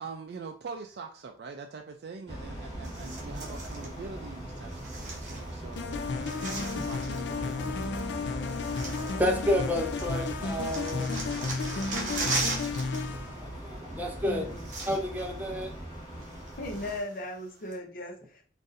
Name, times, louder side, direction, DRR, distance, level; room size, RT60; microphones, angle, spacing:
voice 1, 0.0-7.8, right 4 dB, 65° right, 3 dB, 0.3 m, -43 dB
sound 1, 2.3-17.0, right 1 dB, 20° left, 0.9 m, -40 dB
sound 2, 2.8-3.9 4.7-5.8 6.0-7.3 8.1-8.2 8.5-9.7 10.0-13.0 13.2-13.5 14.2-14.3 14.5-15.3 15.6-15.7 16.2-17.2 17.7-17.8, right 3 dB, 45° right, 0.9 m, -37 dB
sound 3, 5.8-13.4, left 4 dB, 75° left, 0.4 m, -33 dB
voice 2, 9.2-11.3 12.4-12.5 13.3-14.5 14.9-15.7, left 1 dB, 10° right, 1 dB, 0.6 m, -30 dB
voice 3, 14.2-14.6 16.6-18.4, left 1 dB, 50° left, 2 dB, 0.7 m, -37 dB
4.0 x 2.5 x 2.5 m, 0.42 s
head